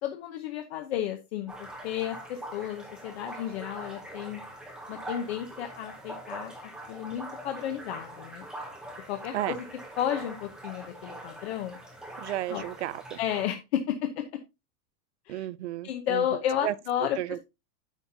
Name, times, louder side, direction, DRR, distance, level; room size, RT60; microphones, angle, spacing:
voice 1, 0.0-4.4 4.9-6.5 6.9-8.5 9.1-9.6 10.0-11.8 12.5-12.6 13.2-14.2 15.3-15.5 15.8-17.2, left 10 dB, 45° left, 0.9 m, -32 dB
sound 1, 1.5-13.4, right 1 dB, ahead, 0.7 m, -43 dB
voice 2, 12.2-13.2 15.3-16.2 16.6-16.7 17.2-17.4, right 14 dB, 50° right, 0.4 m, -33 dB
9.9 x 7.1 x 2.7 m
supercardioid pair, 180°, 45 cm